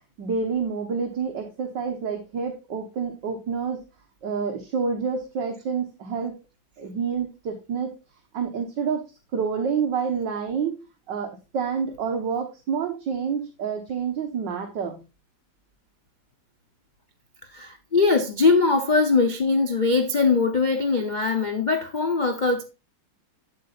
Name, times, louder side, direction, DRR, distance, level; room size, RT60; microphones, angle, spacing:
voice 1, 0.2-3.8 4.2-6.3 6.8-7.9 8.3-9.1 9.3-10.8 11.1-15.0, right 6 dB, 60° right, 1.8 m, -28 dB
voice 2, 17.5-22.6, left 4 dB, 70° left, 0.4 m, -21 dB
8.3 x 8.1 x 2.5 m
omnidirectional pair, 2.3 m